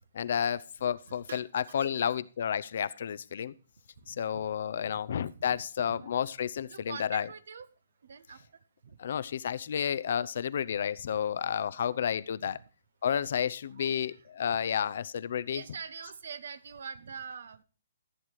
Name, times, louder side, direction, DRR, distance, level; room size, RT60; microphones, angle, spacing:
voice 1, 0.1-3.5 4.1-7.3 9.0-12.6 13.0-15.6, left 8 dB, 60° left, 18 dB, 0.6 m, -31 dB
voice 2, 1.1-1.9 4.0-4.5 4.9-5.0 5.3-6.2 6.7-7.7 8.0-8.4 8.8-9.0 11.1-11.2 12.5-12.6 13.8-14.6 15.5-17.6, right 6 dB, 70° right, 15 dB, 0.9 m, -45 dB
14.5 x 7.5 x 4.7 m, 0.34 s
hypercardioid pair, 140°, 0 cm